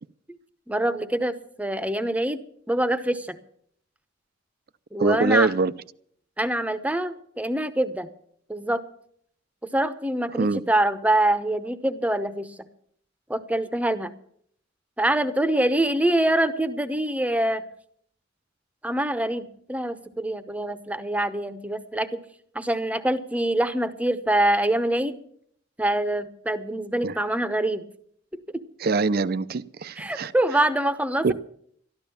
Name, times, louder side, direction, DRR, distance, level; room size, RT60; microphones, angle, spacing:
voice 1, 0.7-3.4 4.9-5.5 6.4-8.1 8.5-8.8 9.6-12.5 13.3-14.1 15.0-17.6 18.8-22.2 22.5-25.2 25.8-27.9 28.3-28.6 30.0-31.3, right 1 dB, 5° right, 0.8 m, -25 dB
voice 2, 5.0-5.7 10.4-10.6 27.0-27.1 28.8-30.3 31.2-31.3, right 4 dB, 55° right, 0.5 m, -23 dB
13.0 x 12.0 x 7.0 m
head